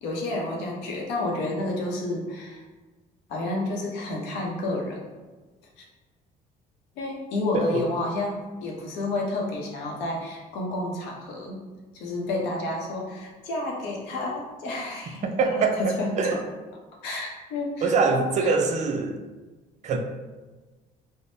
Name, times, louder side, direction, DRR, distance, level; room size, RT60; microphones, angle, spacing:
voice 1, 0.0-2.6 3.3-5.0 5.8-5.9 7.0-11.6 11.9-16.4 17.0-18.5, left 2 dB, 90° left, -1 dB, 0.7 m, -30 dB
voice 2, 15.2-15.8 16.2-16.4 17.8-19.2 19.8-20.0, right 4 dB, 45° right, 4 dB, 0.4 m, -23 dB
3.5 x 2.0 x 2.6 m, 1.2 s
cardioid pair, 110°, 17 cm